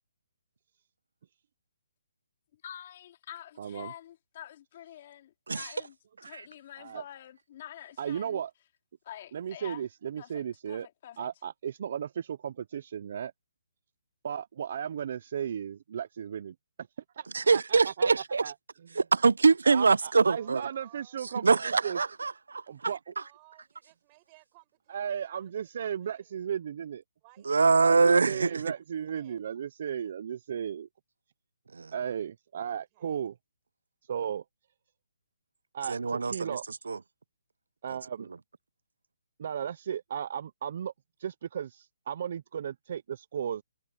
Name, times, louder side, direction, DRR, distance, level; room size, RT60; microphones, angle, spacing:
voice 1, 2.6-5.2 5.5-5.9 6.3-8.4 9.0-9.8 10.2-11.3, left 11 dB, 30° left, 3.3 m, -47 dB
voice 2, 3.6-3.9 6.8-7.0 8.0-8.5 9.3-10.9 11.2-13.3 14.2-16.5 17.2-18.1 18.4-18.5 19.7-22.0 22.7-23.0 24.9-27.0 27.8-30.9 31.9-33.3 34.1-34.4 35.7-36.6 37.8-38.3 39.4-40.9 41.2-43.0 43.3-43.6, right 8 dB, 35° right, 0.4 m, -35 dB
voice 3, 17.3-18.4 19.0-20.6 21.2-23.2 27.5-28.6 31.7-31.9 35.9-37.0 37.9-38.0, right 4 dB, 90° right, 0.5 m, -24 dB
voice 4, 20.2-21.6 21.9-22.2 23.2-26.5 27.2-28.6 28.9-29.4 32.7-33.3, right 25 dB, 20° right, 7.1 m, -60 dB
hypercardioid pair, 175°, 0 cm